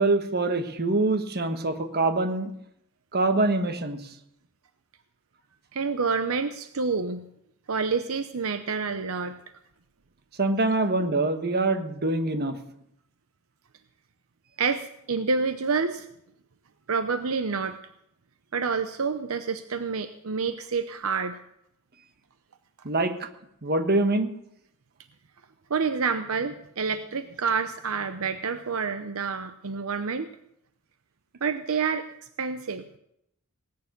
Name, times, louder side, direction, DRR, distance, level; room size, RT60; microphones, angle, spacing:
voice 1, 0.0-2.5 3.1-4.1 10.4-12.6 22.8-23.3 23.6-24.3, right 2 dB, 45° right, 8 dB, 1.4 m, -24 dB
voice 2, 5.7-7.2 7.7-9.4 11.0-11.1 14.6-16.1 16.9-17.8 18.5-21.4 25.7-30.3 31.4-32.1 32.4-32.8, right 5 dB, 70° right, 10 dB, 0.8 m, -28 dB
19.0 x 9.6 x 6.6 m, 0.77 s
head